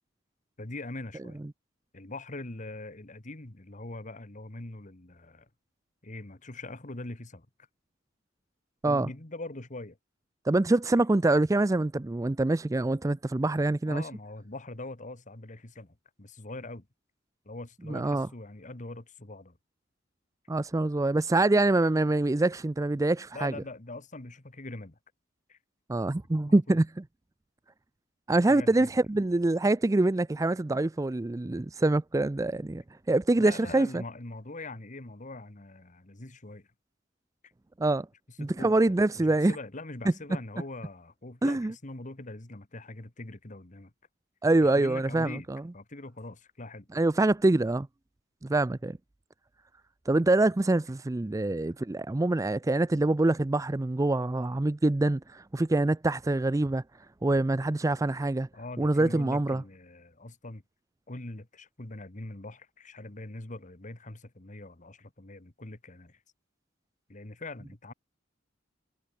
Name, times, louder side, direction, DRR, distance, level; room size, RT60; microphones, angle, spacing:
voice 1, 0.6-1.4 1.9-5.5 6.0-7.5 8.8-10.0 13.9-16.9 17.5-19.6 23.3-25.0 25.5-25.6 26.5-26.8 28.4-28.9 33.3-36.7 38.4-43.9 44.6-45.5 45.7-46.9 58.5-60.6 61.1-66.2 67.1-67.9, left 2 dB, 40° left, 1.8 m, -42 dB
voice 2, 10.5-14.0 17.9-18.3 20.5-23.5 25.9-26.9 28.3-34.0 37.8-38.1 38.4-39.6 41.4-41.7 44.4-45.6 46.9-47.9 48.4-49.0 50.1-56.8 57.2-58.5 58.8-59.6, right 2 dB, 15° right, 0.4 m, -25 dB
head